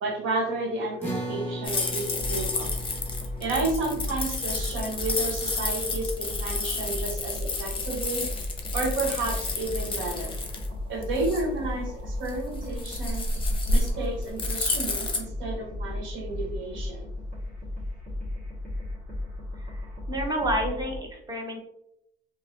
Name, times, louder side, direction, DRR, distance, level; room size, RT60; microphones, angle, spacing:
voice 1, 0.0-2.7 3.4-8.3 8.7-10.4 10.9-13.3 13.7-17.0, right 2 dB, 75° right, 0 dB, 0.8 m, -31 dB
sound 1, 1.0-7.6, equal, 10° left, 1.1 m, -39 dB
sound 2, 1.6-15.2, left 3 dB, 25° left, 0.7 m, -31 dB
sound 3, 2.2-21.0, left 1 dB, 40° right, 1.2 m, -35 dB
voice 2, 19.6-21.6, right 1 dB, 20° right, 0 dB, 0.8 m, -30 dB
3.0 x 2.5 x 2.5 m, 0.77 s
cardioid pair, 90°, 20 cm